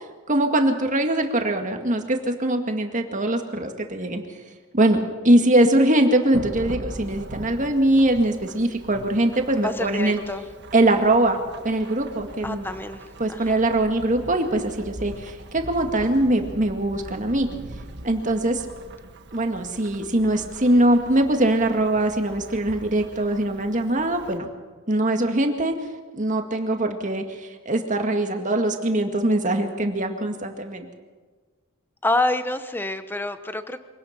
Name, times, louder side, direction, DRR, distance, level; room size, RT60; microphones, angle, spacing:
voice 1, 0.3-4.2 4.7-10.2 10.7-11.4 11.6-12.7 13.2-17.5 18.0-18.6 19.3-24.5 24.9-25.7 26.1-30.9, right 1 dB, 40° right, 5 dB, 2.0 m, -22 dB
Thunderstorm / Rain, 6.3-24.4, right 1 dB, 55° right, 1.5 m, -41 dB
voice 2, 9.6-10.4 12.4-13.6 32.0-33.8, left 2 dB, 10° left, 10 dB, 1.0 m, -27 dB
24.5 x 18.0 x 6.0 m, 1.4 s
head